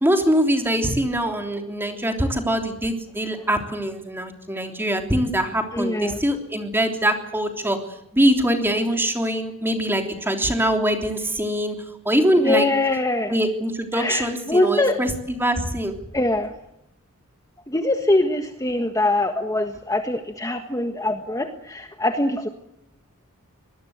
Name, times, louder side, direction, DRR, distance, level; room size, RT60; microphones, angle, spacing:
voice 1, 0.0-7.8 8.1-11.8 12.0-12.7 13.3-15.9, equal, 10° right, 5 dB, 3.3 m, -23 dB
voice 2, 5.7-6.2 12.4-13.3 14.0-15.0 16.1-16.5 17.7-22.5, left 2 dB, 15° left, 6 dB, 1.5 m, -23 dB
24.5 x 20.0 x 8.1 m, 0.84 s
head